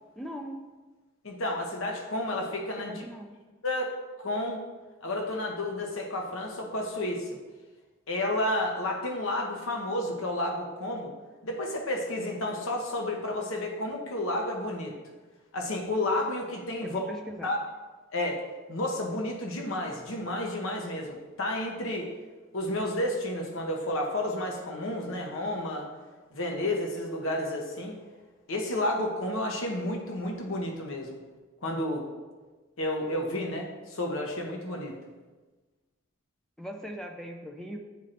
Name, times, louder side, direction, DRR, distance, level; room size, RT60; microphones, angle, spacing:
voice 1, 0.2-0.7 2.8-3.4 16.8-17.5 36.6-37.8, equal, ahead, 2 dB, 0.3 m, -39 dB
voice 2, 1.2-3.0 3.6-3.9 4.2-4.6 5.0-7.4 8.1-11.1 11.4-14.9 15.5-17.1 17.4-17.6 18.1-18.4 18.7-22.1 22.5-25.9 26.3-28.0 28.5-31.2 31.6-32.1 32.8-35.0, left 1 dB, 80° left, 1 dB, 0.9 m, -31 dB
9.3 x 4.3 x 2.6 m, 1.3 s
head